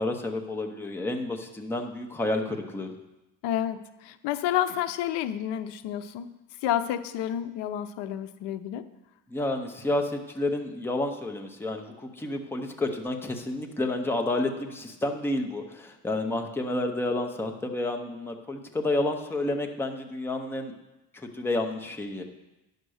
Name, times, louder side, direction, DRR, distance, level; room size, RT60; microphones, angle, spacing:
voice 1, 0.0-2.9 9.3-20.7 21.1-22.2, left 2 dB, 5° left, 3 dB, 0.7 m, -30 dB
voice 2, 3.4-3.8 4.0-6.3 6.6-8.8, left 11 dB, 80° left, 12 dB, 0.7 m, -29 dB
9.9 x 6.6 x 6.3 m, 0.99 s
cardioid pair, 160°, 41 cm